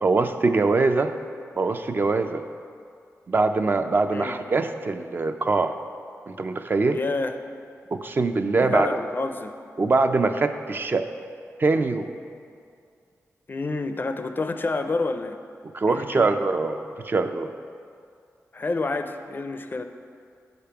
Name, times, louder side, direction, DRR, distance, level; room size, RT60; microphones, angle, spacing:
voice 1, 0.0-1.1 1.6-2.4 3.3-5.8 6.3-7.0 7.9-9.0 9.8-11.0 11.6-12.1 15.7-17.5, right 3 dB, 40° right, 8 dB, 0.3 m, -23 dB
voice 2, 6.9-7.4 8.6-9.6 13.5-15.4 15.9-16.4 18.5-19.8, left 3 dB, 40° left, 8 dB, 0.4 m, -28 dB
6.5 x 5.1 x 5.7 m, 2.3 s
wide cardioid pair, 100°, 6 cm